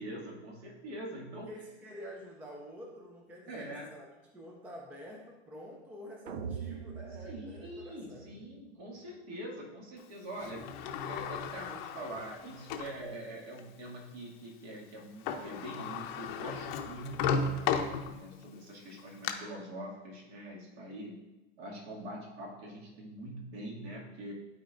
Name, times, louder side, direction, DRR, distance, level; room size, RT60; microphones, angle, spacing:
voice 1, 0.0-1.5 3.5-3.9 7.2-17.6 18.0-21.2 21.6-24.3, right 1 dB, 55° right, -2 dB, 2.2 m, -44 dB
voice 2, 1.3-8.5, equal, 5° right, -1 dB, 0.4 m, -48 dB
sound 1, 6.3-8.5, right 7 dB, 85° right, 0.6 m, -42 dB
Sliding door, 10.4-13.0 13.6-13.7 15.0-15.1 15.3-18.4 18.9-19.3, left 6 dB, 40° left, 0.7 m, -35 dB
12.5 x 4.3 x 2.5 m, 1.0 s
hypercardioid pair, 130°, 37 cm